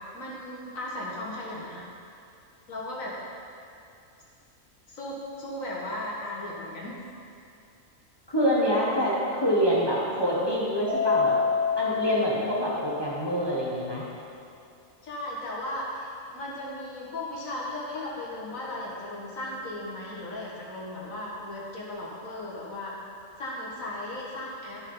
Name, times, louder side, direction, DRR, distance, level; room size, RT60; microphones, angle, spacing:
voice 1, 0.1-1.8 2.7-3.1 4.9-7.0 15.0-22.9 23.4-24.8, left 1 dB, 75° left, -4 dB, 2.2 m, -36 dB
voice 2, 8.3-11.4 11.8-14.1, equal, 20° left, -7 dB, 1.5 m, -26 dB
Mallet percussion, 10.9-13.3, left 6 dB, 20° right, 2.0 m, -27 dB
13.0 x 6.3 x 4.0 m, 2.6 s
omnidirectional pair, 1.4 m